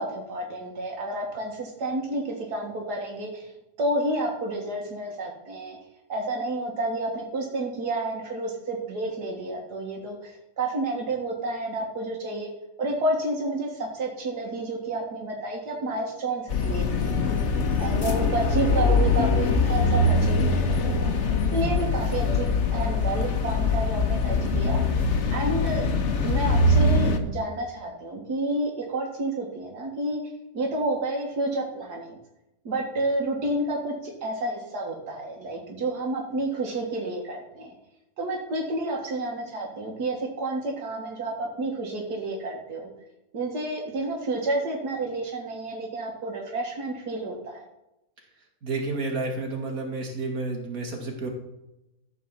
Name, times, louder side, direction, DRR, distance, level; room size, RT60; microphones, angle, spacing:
voice 1, 0.0-3.5 3.8-5.8 6.1-12.5 12.8-17.4 17.8-21.1 21.5-24.8 25.3-25.8 26.2-30.2 30.5-32.2 32.7-37.7 38.2-42.9 43.3-47.7, right 2 dB, 90° right, 1 dB, 2.2 m, -30 dB
sound 1, 16.5-27.2, left 3 dB, 50° left, 1.3 m, -23 dB
voice 2, 48.6-51.3, right 3 dB, 65° right, 1 dB, 2.6 m, -30 dB
13.5 x 4.7 x 7.3 m, 0.90 s
omnidirectional pair, 1.7 m